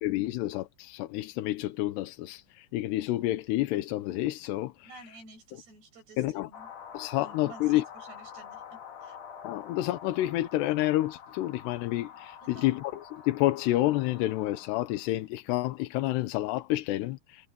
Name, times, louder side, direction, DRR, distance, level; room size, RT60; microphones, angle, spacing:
voice 1, 0.0-4.9 6.2-6.5 6.9-7.8 9.4-17.5, left 16 dB, 90° left, 3.0 m, -29 dB
voice 2, 4.8-6.7 7.2-9.2 12.4-12.8, right 2 dB, 80° right, 10.0 m, -51 dB
sound 1, 6.5-15.2, left 8 dB, 55° left, 3.2 m, -47 dB
omnidirectional pair, 4.7 m